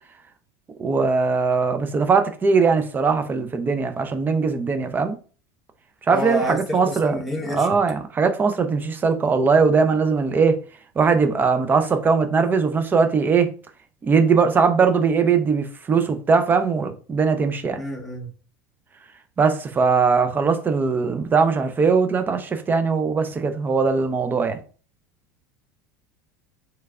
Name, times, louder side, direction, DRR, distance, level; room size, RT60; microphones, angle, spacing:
voice 1, 0.8-5.2 6.1-7.2 7.5-10.6 11.0-13.5 14.0-17.8 19.4-24.6, right 5 dB, 20° right, 0.5 m, -20 dB
voice 2, 6.1-7.7 17.8-18.3, equal, ahead, 1.0 m, -28 dB
3.3 x 3.2 x 2.4 m
supercardioid pair, 115°, 9 cm